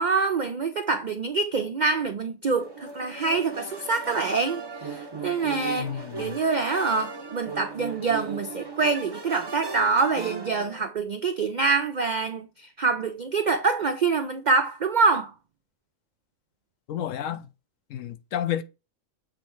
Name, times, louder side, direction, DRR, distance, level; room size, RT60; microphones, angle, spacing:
voice 1, 0.0-5.9 6.2-15.3, right 4 dB, 70° right, 0.4 m, -25 dB
sound 1, 2.5-10.8, right 4 dB, 20° right, 0.7 m, -37 dB
voice 2, 5.8-6.4 16.9-17.4 17.9-18.6, left 10 dB, 70° left, 0.9 m, -31 dB
7.5 x 3.2 x 4.5 m
omnidirectional pair, 1.4 m